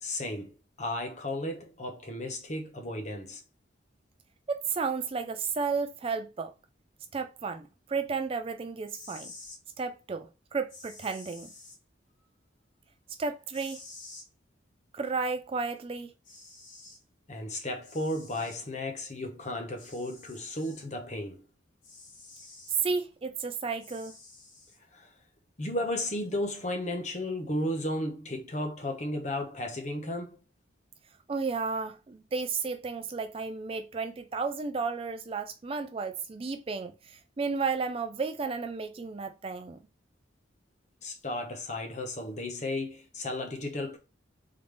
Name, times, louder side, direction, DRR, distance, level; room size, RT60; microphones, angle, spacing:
voice 1, 0.0-3.4 17.3-21.5 24.9-25.1 25.6-30.4 41.0-44.0, left 1 dB, 35° left, 1.0 m, -34 dB
voice 2, 4.5-6.5 7.1-9.3 9.8-11.5 13.2-13.8 14.9-16.1 22.8-24.1 31.3-39.8, right 4 dB, 30° right, 0.3 m, -33 dB
sound 1, 8.9-9.6 10.7-11.8 13.5-14.3 15.8-15.9 16.2-17.0 17.8-18.6 19.8-20.9 21.8-22.8 23.8-24.8, left 3 dB, 85° left, 2.3 m, -50 dB
3.8 x 3.4 x 3.3 m
head